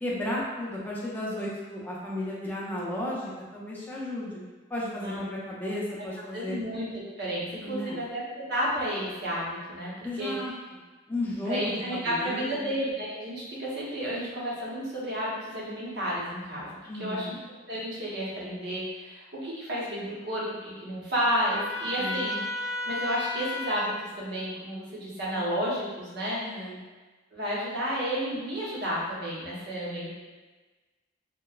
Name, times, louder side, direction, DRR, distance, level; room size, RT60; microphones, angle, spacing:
voice 1, 0.0-4.4 4.7-6.6 7.6-8.0 10.0-10.5 11.1-12.7 16.9-17.3 22.0-22.3 26.4-26.8, left 1 dB, 10° left, -6 dB, 0.4 m, -34 dB
voice 2, 6.3-6.9 7.2-10.5 11.5-17.4 17.7-22.4 22.9-26.7 27.3-30.1, equal, 60° right, -6 dB, 0.8 m, -32 dB
Trumpet, 21.5-24.0, left 2 dB, 85° left, 0.6 m, -33 dB
2.9 x 2.0 x 2.3 m, 1.3 s
head